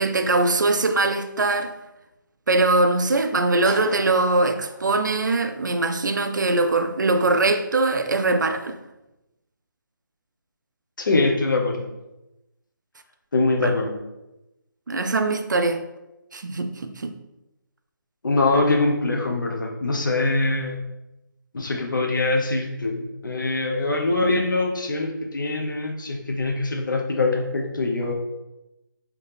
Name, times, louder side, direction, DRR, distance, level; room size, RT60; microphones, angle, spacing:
voice 1, 0.0-1.7 2.5-8.8 13.6-13.7 14.9-15.8 16.3-17.1, right 2 dB, 60° right, 0.4 m, -22 dB
sound 1, 3.7-5.9, left 1 dB, 25° left, 0.7 m, -42 dB
voice 2, 11.0-11.9 13.3-14.0 18.2-20.8 21.5-28.1, left 2 dB, 65° left, 0.9 m, -23 dB
3.9 x 2.9 x 3.3 m
figure-of-eight pair, 175°, 11 cm